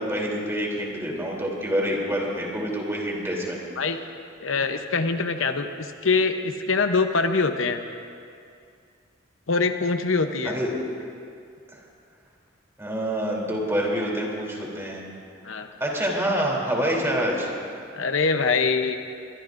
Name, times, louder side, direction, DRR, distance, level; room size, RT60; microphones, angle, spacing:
voice 1, 0.0-3.6 10.5-10.7 12.8-15.0 15.8-17.5, equal, 15° right, -3 dB, 3.2 m, -26 dB
voice 2, 4.4-7.8 9.5-10.5 15.4-15.7 17.9-19.0, left 4 dB, 80° left, 7 dB, 0.8 m, -24 dB
24.0 x 22.5 x 2.6 m, 2.3 s
head